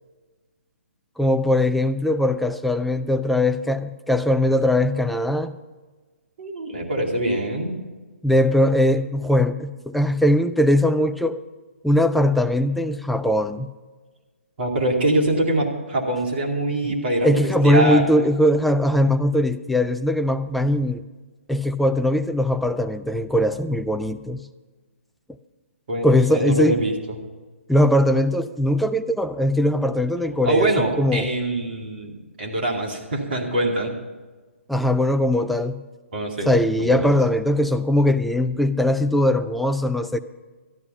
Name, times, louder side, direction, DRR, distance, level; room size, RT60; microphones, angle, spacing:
voice 1, 1.2-5.6 8.2-11.4 11.8-13.7 16.8-16.9 17.2-21.0 21.5-24.5 26.0-26.8 27.7-31.3 34.7-35.9 36.5-40.2, left 1 dB, ahead, 9 dB, 0.3 m, -20 dB
voice 2, 6.4-7.8 14.6-17.3 17.6-18.0 25.9-27.2 30.4-33.9 36.1-37.1, right 1 dB, 50° right, 0 dB, 2.6 m, -24 dB
13.5 x 11.0 x 5.7 m, 1.3 s
figure-of-eight pair, 130°, 7 cm